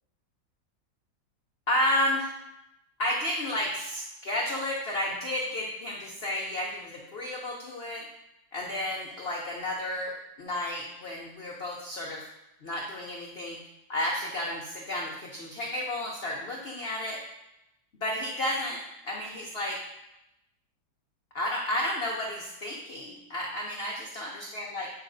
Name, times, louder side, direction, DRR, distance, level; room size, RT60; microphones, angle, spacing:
voice 1, 1.7-2.3 3.0-8.1 8.5-12.2 12.6-13.6 13.9-17.2 18.0-18.8 19.0-19.8 21.3-24.9, left 1 dB, 80° left, -2 dB, 0.5 m, -32 dB
8.2 x 4.8 x 2.6 m, 0.90 s
omnidirectional pair, 2.0 m